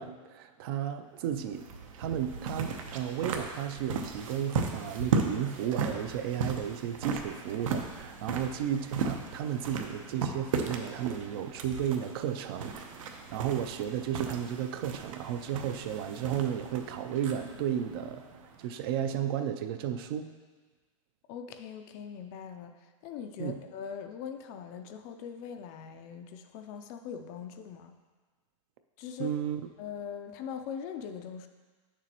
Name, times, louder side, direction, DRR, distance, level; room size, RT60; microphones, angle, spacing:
voice 1, 0.0-1.6 2.0-20.3 23.4-23.6 29.2-29.6, right 9 dB, 45° right, 9 dB, 0.4 m, -33 dB
sound 1, 1.2-18.9, right 5 dB, 80° right, 0.9 m, -36 dB
voice 2, 21.3-28.0 29.0-29.3 29.8-31.5, left 7 dB, 35° left, 7 dB, 0.4 m, -41 dB
8.4 x 6.8 x 3.0 m, 1.4 s
supercardioid pair, 160°, 17 cm